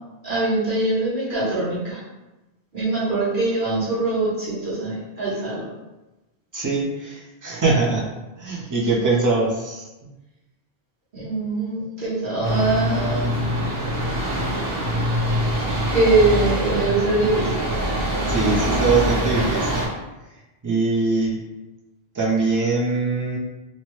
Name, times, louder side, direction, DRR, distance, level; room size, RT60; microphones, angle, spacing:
voice 1, 0.2-2.0 2.7-5.7 8.5-8.6 11.1-13.3 15.9-17.7, right 2 dB, 50° right, -10 dB, 1.4 m, -22 dB
voice 2, 6.5-8.1 8.4-9.9 18.3-19.9 20.6-21.4 22.1-23.4, right 3 dB, 30° right, -4 dB, 0.4 m, -22 dB
sound 1, 12.4-19.9, equal, 70° right, 0.9 m, -24 dB
2.8 x 2.2 x 3.1 m, 1.1 s
omnidirectional pair, 1.1 m